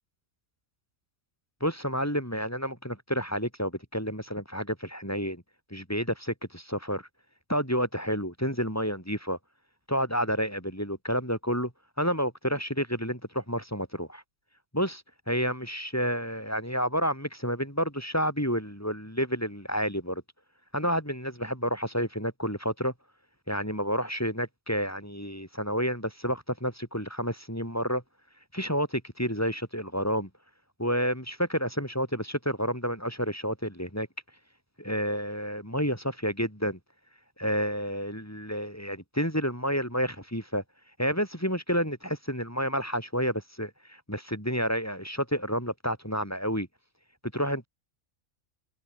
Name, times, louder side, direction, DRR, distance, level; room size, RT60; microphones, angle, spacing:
voice 1, 1.6-5.4 5.7-7.0 7.5-9.4 9.9-11.7 12.0-14.2 14.7-20.2 20.7-22.9 23.5-28.0 28.5-30.3 30.8-34.1 34.8-36.8 37.4-40.6 41.0-46.7 47.3-47.7, equal, 10° left, 7.3 m, -30 dB
omnidirectional pair, 1.4 m